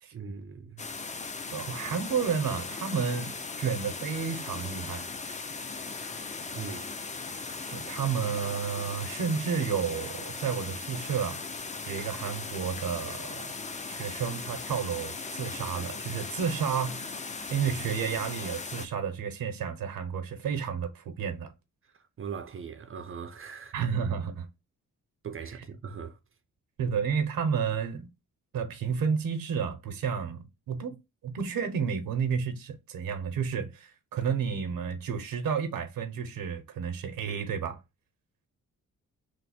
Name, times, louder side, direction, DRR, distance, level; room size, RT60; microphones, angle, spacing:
voice 1, 0.1-0.9 6.5-6.9 21.9-23.8 25.2-26.2, right 6 dB, 40° right, 0.4 m, -40 dB
sound 1, 0.8-18.9, left 4 dB, 20° left, 0.4 m, -38 dB
voice 2, 1.5-5.1 7.7-11.4 11.9-13.5 13.9-21.5 23.7-24.5 25.4-25.5 26.8-28.1 28.5-31.0 31.2-37.8, right 6 dB, 80° right, 0.7 m, -31 dB
3.2 x 2.0 x 4.0 m
cardioid pair, 100°, 34 cm